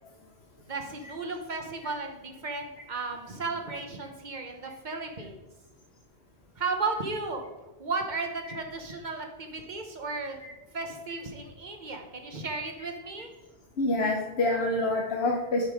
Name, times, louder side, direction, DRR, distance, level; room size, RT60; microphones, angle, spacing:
voice 1, 0.7-5.3 6.6-7.4 7.8-10.4 10.7-13.3, right 3 dB, 45° right, 4 dB, 1.1 m, -34 dB
voice 2, 13.8-15.7, left 2 dB, 70° left, -1 dB, 1.2 m, -28 dB
8.1 x 5.4 x 4.7 m, 1.0 s
omnidirectional pair, 1.1 m